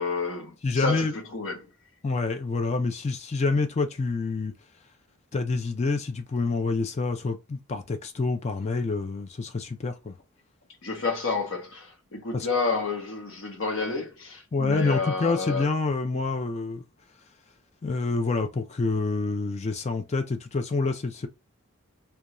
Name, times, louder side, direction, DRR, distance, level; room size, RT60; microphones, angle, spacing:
voice 1, 0.0-1.7 10.8-15.7, left 4 dB, 65° left, 0.9 m, -30 dB
voice 2, 0.6-1.2 2.0-4.5 5.3-10.1 12.3-12.5 14.5-16.8 17.8-21.3, left 3 dB, 30° left, 0.3 m, -27 dB
2.4 x 2.2 x 2.9 m
head